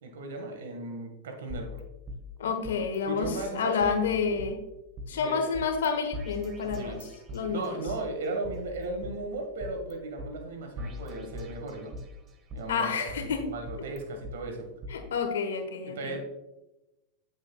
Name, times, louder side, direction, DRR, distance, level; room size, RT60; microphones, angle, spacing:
voice 1, 0.0-1.8 3.1-4.0 5.1-5.4 6.7-7.0 7.5-11.9 12.5-14.7 15.8-16.2, right 2 dB, 80° right, 4 dB, 1.5 m, -36 dB
sound 1, 1.5-3.0 3.2-3.3 3.8-5.1 5.5-5.9 6.1-8.0 8.4-9.9 10.2-10.3 10.8-12.1 12.5-14.3 14.8-14.9, left 1 dB, 35° right, 1.2 m, -41 dB
voice 2, 2.4-4.6 5.1-7.0 7.3-7.8 12.7-13.4 14.9-16.2, left 5 dB, 85° left, 5 dB, 1.2 m, -29 dB
7.9 x 7.1 x 2.3 m, 0.96 s
hypercardioid pair, 110°, 0 cm